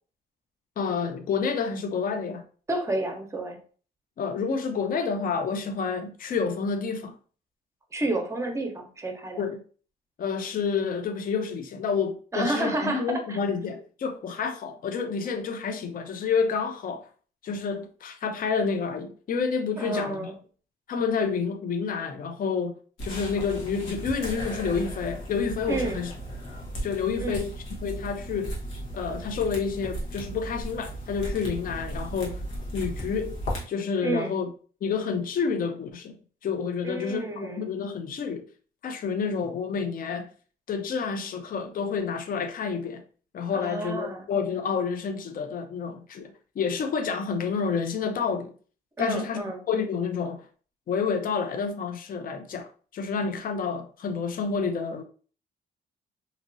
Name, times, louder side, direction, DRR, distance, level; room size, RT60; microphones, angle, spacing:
voice 1, 0.8-2.4 4.2-7.1 9.4-9.6 10.2-17.1 17.4-20.3 20.9-22.8 23.0-26.1 26.8-27.5 27.8-28.6 28.9-32.4 32.7-33.3 33.7-34.5 34.8-36.2 36.4-38.4 38.8-40.3 40.7-43.0 43.3-48.5 49.0-50.4 50.9-52.7 52.9-55.0, left 5 dB, 45° left, 0.5 m, -29 dB
voice 2, 2.7-3.6 7.9-9.4 12.3-13.4 19.8-20.4 25.7-26.0 27.2-27.4 34.0-34.3 36.8-37.7 43.5-44.2 49.0-49.6, right 2 dB, 15° right, 0.8 m, -30 dB
sound 1, 23.0-33.6, right 1 dB, 85° left, 1.2 m, -36 dB
2.8 x 2.8 x 2.6 m
cardioid pair, 90°, 20 cm